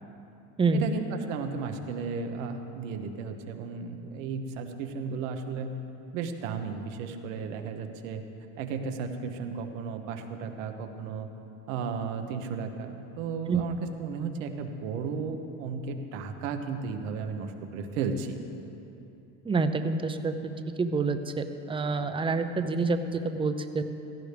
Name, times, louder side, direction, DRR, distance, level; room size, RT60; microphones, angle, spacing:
voice 1, 0.7-5.7 6.1-8.2 8.6-11.3 11.7-18.4, right 5 dB, 80° right, 6 dB, 1.3 m, -34 dB
voice 2, 19.4-20.5 20.8-23.8, right 4 dB, 15° right, 8 dB, 0.7 m, -27 dB
16.5 x 14.0 x 3.4 m, 2.9 s
supercardioid pair, 110°, 38 cm